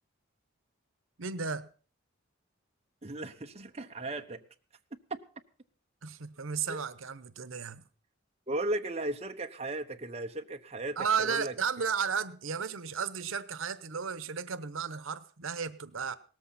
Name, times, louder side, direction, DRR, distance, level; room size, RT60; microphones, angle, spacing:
voice 1, 1.2-1.7 6.0-7.8 11.0-16.2, right 6 dB, 85° right, 14 dB, 0.9 m, -34 dB
voice 2, 3.0-4.4 5.1-5.2 6.7-6.8 8.5-11.5, right 2 dB, 30° right, 5 dB, 1.0 m, -36 dB
18.5 x 14.0 x 4.2 m, 0.39 s
head